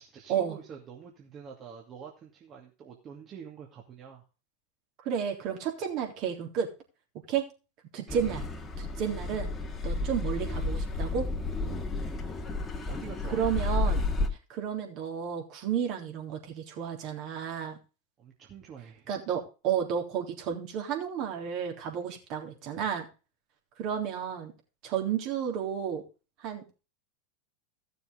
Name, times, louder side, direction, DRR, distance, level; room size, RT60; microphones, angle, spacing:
voice 1, 0.0-4.2 8.1-8.4 12.0-12.3 12.9-13.4 18.2-19.1, right 7 dB, 35° right, -1 dB, 2.5 m, -47 dB
voice 2, 5.0-6.7 7.3-7.4 7.9-8.4 8.8-9.5 9.8-11.3 13.3-14.0 14.5-17.8 19.1-23.1 23.8-24.5 24.8-26.0 26.4-26.6, right 8 dB, 50° right, 1 dB, 3.5 m, -32 dB
Car passing by / Accelerating revving vroom, 8.1-14.3, left 2 dB, 20° left, 1.9 m, -31 dB
15.5 x 6.9 x 3.8 m, 0.32 s
figure-of-eight pair, 90°, 0 cm